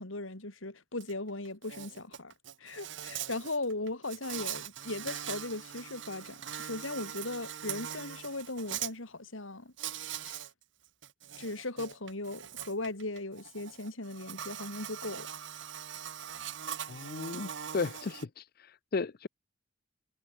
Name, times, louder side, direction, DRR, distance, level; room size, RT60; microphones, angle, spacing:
voice 1, 0.0-2.3 2.6-9.7 10.2-10.5 11.4-15.3, left 2 dB, 90° left, 3.8 m, -38 dB
Insect, 1.0-1.1 1.5-8.9 9.8-10.5 10.9-18.3, right 10 dB, 70° right, 1.2 m, -41 dB
voice 2, 16.9-19.3, left 4 dB, 50° left, 0.6 m, -35 dB
head